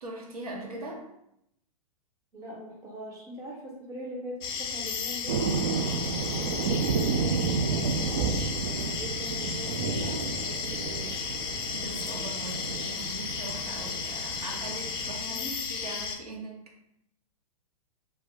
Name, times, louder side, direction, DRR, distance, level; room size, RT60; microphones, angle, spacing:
voice 1, 0.0-1.1 11.7-16.8, right 2 dB, 80° right, 0 dB, 0.7 m, -41 dB
voice 2, 2.3-5.4 6.4-11.1 15.3-15.6, right 2 dB, 15° right, -2 dB, 0.7 m, -41 dB
sound 1, 4.4-16.2, left 6 dB, 40° left, 0.4 m, -34 dB
sound 2, 5.3-15.2, right 5 dB, 50° right, 0.4 m, -31 dB
2.4 x 2.2 x 3.5 m, 0.78 s
hypercardioid pair, 115°, 19 cm